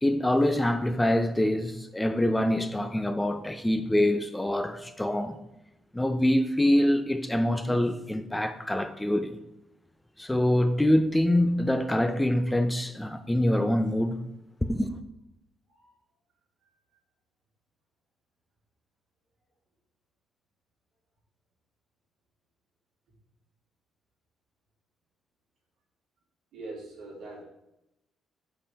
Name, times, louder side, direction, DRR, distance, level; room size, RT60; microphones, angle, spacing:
voice 1, 0.0-5.4 5.9-9.3 10.2-14.2 14.7-15.0, left 1 dB, 10° left, 0.6 m, -25 dB
voice 2, 26.5-27.4, right 2 dB, 75° right, 2.9 m, -41 dB
5.6 x 4.9 x 5.8 m
cardioid pair, 90°, 0 cm